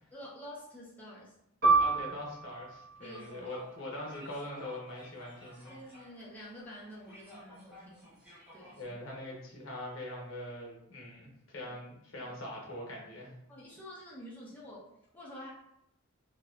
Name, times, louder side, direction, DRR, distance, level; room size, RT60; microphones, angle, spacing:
voice 1, 0.1-1.4 3.0-3.6 5.7-8.1 8.5-8.9 12.2-12.3 13.5-15.5, equal, 10° left, -7 dB, 0.4 m, -49 dB
Piano, 1.6-6.7 7.0-7.2 7.9-8.3, right 3 dB, 50° right, 0.7 m, -32 dB
voice 2, 1.8-5.8 8.8-13.3, left 1 dB, 75° left, -2 dB, 0.7 m, -42 dB
sound 1, 3.0-8.8, equal, 10° right, 0.8 m, -54 dB
2.6 x 2.2 x 2.2 m, 0.76 s
head